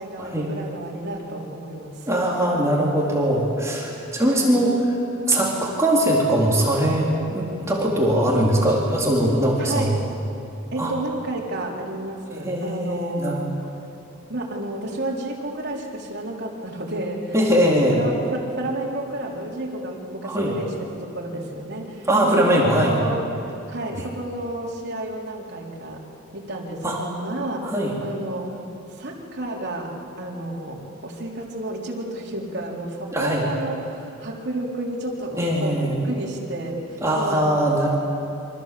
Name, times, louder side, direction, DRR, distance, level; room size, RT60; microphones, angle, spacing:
voice 1, 0.0-2.1 4.3-4.6 9.6-10.0 10.7-13.5 14.3-23.2 23.7-26.1 26.3-27.7 28.0-28.6 28.9-37.5, right 1 dB, 55° right, -2 dB, 4.0 m, -31 dB
voice 2, 2.1-4.8 5.3-10.0 10.8-10.9 12.4-13.4 17.3-18.0 20.2-20.5 22.1-23.0 23.9-24.0 26.8-27.0 27.6-27.9 33.1-33.5 35.3-36.0 37.0-38.0, right 1 dB, 15° right, -4 dB, 3.9 m, -21 dB
28.5 x 25.0 x 7.8 m, 2.8 s
head